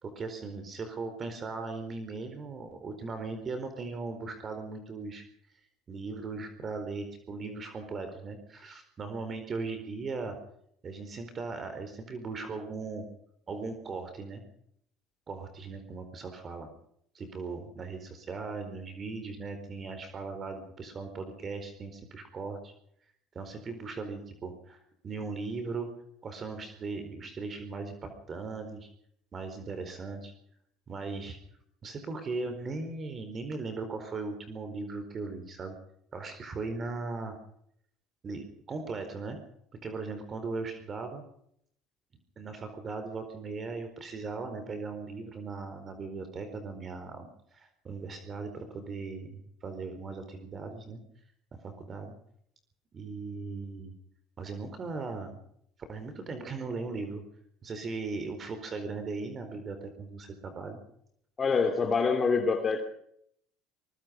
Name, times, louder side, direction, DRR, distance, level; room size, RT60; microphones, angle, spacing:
voice 1, 0.0-5.2 5.9-10.4 10.8-13.0 13.5-14.4 15.3-16.7 17.1-22.7 23.3-25.9 26.2-28.9 29.3-30.3 30.9-31.4 31.8-35.7 36.1-37.4 38.2-39.4 39.8-41.2 42.4-51.0 51.6-52.1 52.9-53.9 54.4-55.4 55.9-57.2 57.6-60.8, right 3 dB, 35° right, 8 dB, 4.3 m, -38 dB
voice 2, 61.4-62.8, left 5 dB, 30° left, 6 dB, 2.8 m, -25 dB
23.5 x 21.5 x 5.3 m, 0.71 s
supercardioid pair, 115°, 0 cm